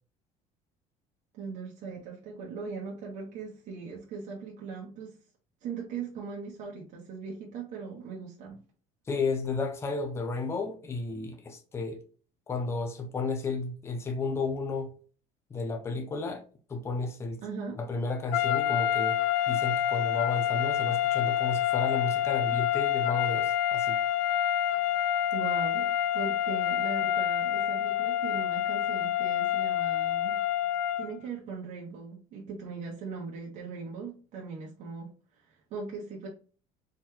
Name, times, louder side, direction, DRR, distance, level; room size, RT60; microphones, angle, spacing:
voice 1, 1.3-5.2 5.6-8.6 17.4-17.8 25.3-30.4 31.0-35.1 35.4-36.3, right 5 dB, 50° right, 1.3 m, -39 dB
voice 2, 9.1-12.0 12.5-14.9 15.5-16.4 16.7-17.4 17.8-19.2 19.5-24.0, left 3 dB, 15° left, 0.7 m, -32 dB
sound 1, 18.3-31.2, left 11 dB, 90° left, 0.5 m, -27 dB
4.3 x 3.8 x 3.0 m
cardioid pair, 160°, 15 cm